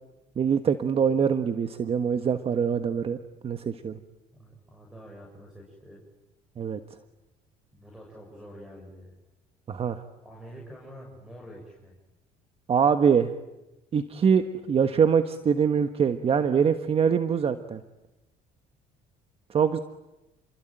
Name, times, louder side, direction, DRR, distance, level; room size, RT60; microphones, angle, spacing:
voice 1, 0.4-3.2 3.4-4.0 6.6-6.8 9.7-10.0 12.7-13.3 13.9-17.8 19.5-19.8, right 7 dB, 40° right, 9 dB, 1.4 m, -24 dB
voice 2, 4.4-6.0 7.7-9.1 10.2-12.0, equal, 5° right, -1 dB, 7.3 m, -46 dB
29.5 x 22.5 x 9.2 m, 0.98 s
cardioid pair, 100°, 15 cm